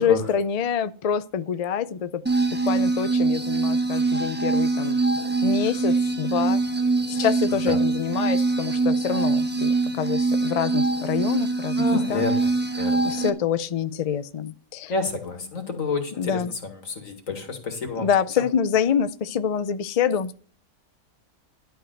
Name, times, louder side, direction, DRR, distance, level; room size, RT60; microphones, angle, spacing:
voice 1, 0.0-2.2 2.5-5.0 5.4-6.6 7.1-11.8 12.1-12.3 13.0-14.9 16.2-16.5 18.0-20.4, left 8 dB, 85° left, 0.3 m, -26 dB
sound 1, 2.3-13.3, right 3 dB, 10° right, 1.0 m, -23 dB
voice 2, 11.8-12.5 12.8-13.1 14.9-18.1 18.4-18.5, left 4 dB, 65° left, 2.4 m, -29 dB
11.5 x 4.7 x 7.7 m
omnidirectional pair, 1.5 m